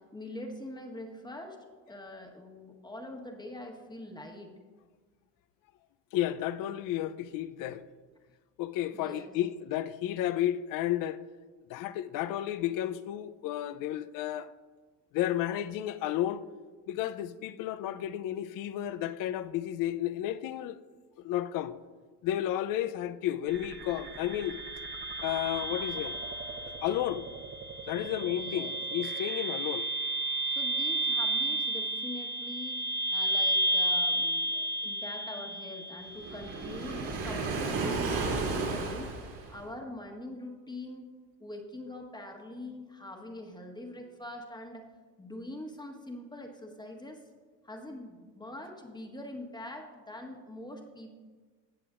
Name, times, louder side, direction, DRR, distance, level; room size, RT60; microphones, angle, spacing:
voice 1, 0.0-1.6 1.9-4.5 8.9-9.3 28.3-28.8 30.4-39.1 39.5-41.1 41.4-44.9 45.2-47.2 47.6-51.1, left 1 dB, 10° left, 1.3 m, -44 dB
voice 2, 6.1-7.8 8.6-11.2 11.7-14.5 15.1-16.4 16.9-20.8 21.2-21.7 22.2-24.6 25.2-26.2 26.6-27.2 27.9-29.8, left 12 dB, 60° left, 0.6 m, -32 dB
sound 1, 23.5-36.5, right 1 dB, 30° right, 0.9 m, -32 dB
Waves surf, 36.2-39.7, right 3 dB, 65° right, 2.8 m, -33 dB
17.5 x 6.8 x 2.5 m
supercardioid pair, 95°, 37 cm